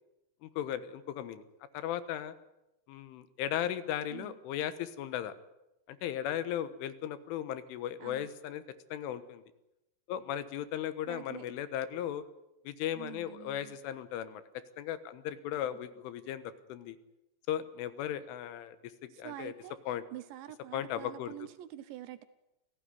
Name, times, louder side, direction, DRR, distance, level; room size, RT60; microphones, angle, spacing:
voice 1, 0.4-1.4 1.7-2.3 2.9-5.4 5.9-8.6 8.9-9.4 10.1-12.2 12.7-14.4 14.8-17.0 17.5-18.8 19.0-19.5 19.9-20.0 20.7-21.3, left 11 dB, 80° left, 13 dB, 3.6 m, -36 dB
voice 2, 11.1-11.6 12.9-13.8 19.1-19.8 20.1-22.2, right 14 dB, 75° right, 13 dB, 3.0 m, -46 dB
27.5 x 16.5 x 9.7 m, 0.90 s
omnidirectional pair, 5.7 m